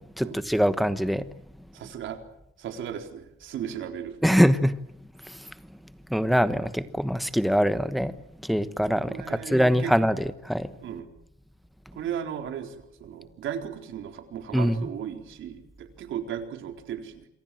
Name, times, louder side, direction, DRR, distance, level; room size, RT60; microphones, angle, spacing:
voice 1, 0.2-1.3 4.2-4.7 5.3-5.4 6.1-8.1 8.4-10.7 14.5-14.9, equal, ahead, 12 dB, 1.1 m, -23 dB
voice 2, 1.7-2.2 2.6-4.2 9.0-9.9 10.8-11.1 11.9-17.3, right 9 dB, 65° right, 5 dB, 4.1 m, -36 dB
27.5 x 24.5 x 7.7 m, 0.78 s
cardioid pair, 175°, 21 cm